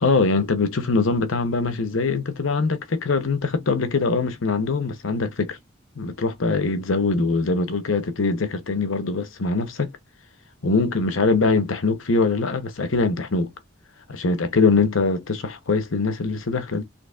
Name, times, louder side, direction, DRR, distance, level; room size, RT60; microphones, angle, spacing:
voice 1, 0.0-5.5 6.0-9.9 10.6-13.5 14.1-16.8, left 3 dB, 85° left, 0.8 m, -22 dB
4.0 x 2.9 x 2.4 m
head